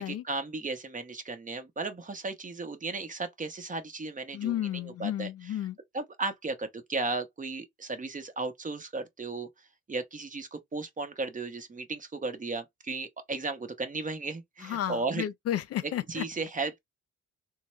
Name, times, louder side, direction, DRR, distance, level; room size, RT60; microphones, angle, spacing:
voice 1, 0.0-5.3 5.9-9.5 9.9-15.3 16.1-16.8, right 3 dB, 25° right, 0.9 m, -35 dB
voice 2, 4.3-5.8 14.6-16.2, left 11 dB, 55° left, 0.4 m, -32 dB
3.7 x 2.2 x 3.1 m
cardioid pair, 90°, 30 cm